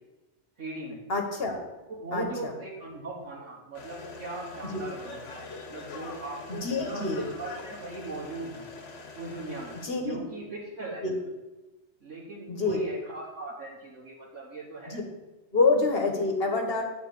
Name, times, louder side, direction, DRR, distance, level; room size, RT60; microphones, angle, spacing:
voice 1, 0.6-1.0 1.9-8.7 9.1-9.7 10.0-11.2 12.0-15.0, right 2 dB, 90° right, -6 dB, 1.8 m, -39 dB
voice 2, 1.1-1.6 2.1-2.5 4.7-4.8 6.5-7.3 9.8-10.2 11.0-11.1 12.5-12.8 14.9-15.0 15.5-16.8, left 3 dB, 55° left, 3 dB, 1.4 m, -27 dB
sound 1, 3.7-9.9, left 3 dB, 80° left, 1.4 m, -44 dB
9.6 x 4.1 x 6.7 m, 1.1 s
omnidirectional pair, 1.2 m